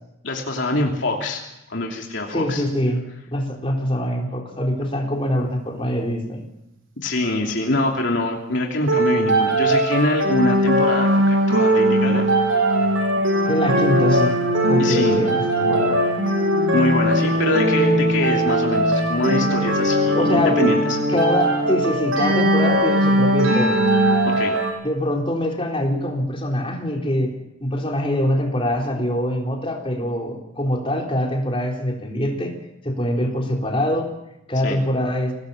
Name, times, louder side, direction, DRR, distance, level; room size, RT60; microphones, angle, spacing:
voice 1, 0.2-1.4 1.7-2.6 7.0-12.3 14.8-15.2 16.7-21.0 24.3-24.5 34.6-34.8, left 2 dB, 60° left, 0 dB, 2.9 m, -24 dB
voice 2, 2.3-3.0 3.3-6.4 13.4-14.4 14.7-16.0 20.2-20.6 21.1-23.9 24.8-27.3 27.6-32.5 32.8-34.1 34.5-35.3, left 1 dB, 25° left, 0 dB, 4.1 m, -23 dB
sound 1, 8.9-24.7, right 1 dB, 75° right, 5.8 m, -19 dB
24.5 x 18.5 x 7.3 m, 0.88 s
head